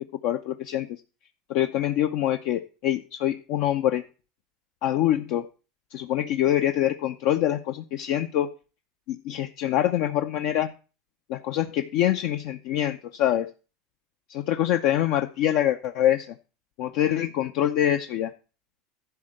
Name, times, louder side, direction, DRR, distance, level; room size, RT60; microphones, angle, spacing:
voice 1, 0.2-0.9 1.5-4.0 4.8-5.5 5.9-8.5 9.1-10.7 11.3-13.5 14.3-16.3 16.8-18.3, left 12 dB, 70° left, 6 dB, 0.7 m, -25 dB
11.5 x 4.4 x 7.6 m, 0.34 s
supercardioid pair, 100°, 0 cm